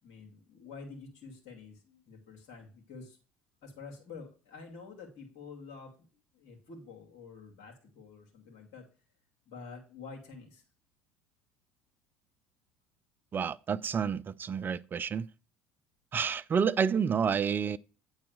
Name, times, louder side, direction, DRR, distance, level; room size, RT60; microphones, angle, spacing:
voice 1, 0.0-3.2 3.6-5.9 6.3-8.8 9.5-10.6, left 4 dB, 70° left, 2.4 m, -48 dB
voice 2, 13.3-15.3 16.1-17.8, right 6 dB, 35° right, 0.5 m, -29 dB
8.9 x 4.0 x 6.5 m
hypercardioid pair, 70°, 6 cm